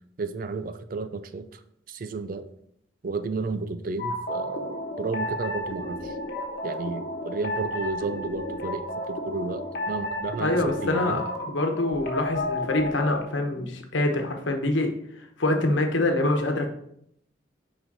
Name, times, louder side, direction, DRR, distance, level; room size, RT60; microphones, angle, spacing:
voice 1, 0.2-1.6 1.9-2.5 3.0-6.1 6.6-11.2, right 3 dB, 45° right, 11 dB, 0.4 m, -32 dB
sound 1, 4.0-13.2, left 1 dB, 55° left, 1.2 m, -32 dB
voice 2, 10.4-14.9 15.4-16.7, left 2 dB, 85° left, 4 dB, 1.1 m, -25 dB
6.0 x 5.0 x 4.0 m, 0.71 s
head